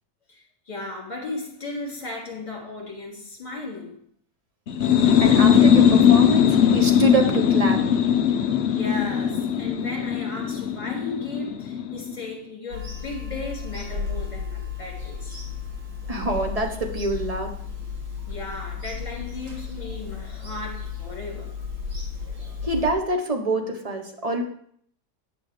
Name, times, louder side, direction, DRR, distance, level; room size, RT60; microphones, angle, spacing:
voice 1, 0.3-4.0 8.5-15.4 18.2-21.6, left 2 dB, 25° left, -3 dB, 3.2 m, -36 dB
sound 1, 4.7-12.2, left 8 dB, 80° left, 0.5 m, -19 dB
voice 2, 5.2-7.8 16.1-17.5 22.6-24.4, right 2 dB, 25° right, 3 dB, 1.0 m, -25 dB
Bird vocalization bird call bird song / Telephone, 12.7-22.9, left 6 dB, 75° right, 2.4 m, -34 dB
9.5 x 6.3 x 5.1 m, 0.64 s
omnidirectional pair, 1.8 m